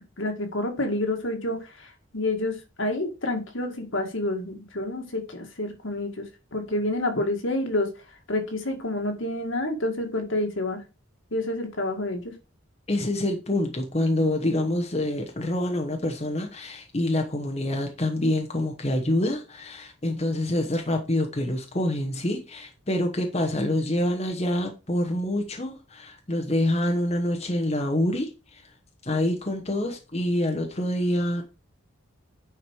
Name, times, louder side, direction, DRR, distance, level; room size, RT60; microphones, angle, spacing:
voice 1, 0.2-6.2 6.5-7.9 8.3-10.8 11.3-12.2, left 1 dB, 70° left, 2.0 m, -28 dB
voice 2, 12.9-28.7 29.0-31.4, left 1 dB, 30° left, 1.1 m, -26 dB
9.2 x 5.1 x 4.7 m
head